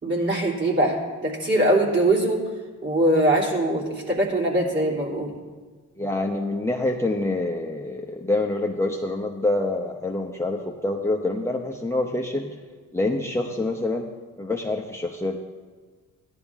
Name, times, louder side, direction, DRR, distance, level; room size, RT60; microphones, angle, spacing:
voice 1, 0.0-2.4 2.8-5.3, right 1 dB, 35° right, -3 dB, 3.5 m, -22 dB
voice 2, 6.0-12.5 12.9-14.1 14.4-15.4, left 2 dB, 10° left, 0 dB, 0.9 m, -26 dB
14.5 x 11.0 x 3.6 m, 1.4 s
cardioid pair, 90°, 30 cm